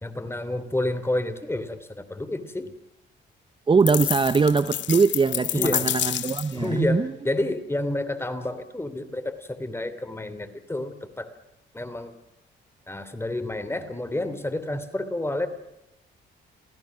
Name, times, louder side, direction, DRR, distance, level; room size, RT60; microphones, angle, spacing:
voice 1, 0.0-2.7 5.5-5.9 6.5-11.3 11.7-12.1 12.9-15.5, left 1 dB, 10° left, 10 dB, 3.0 m, -29 dB
voice 2, 3.7-7.1, right 4 dB, 25° right, 13 dB, 0.8 m, -22 dB
sound 1, 3.9-6.6, left 12 dB, 65° left, 0.8 m, -28 dB
28.5 x 17.0 x 6.3 m, 0.84 s
cardioid pair, 90°, 20 cm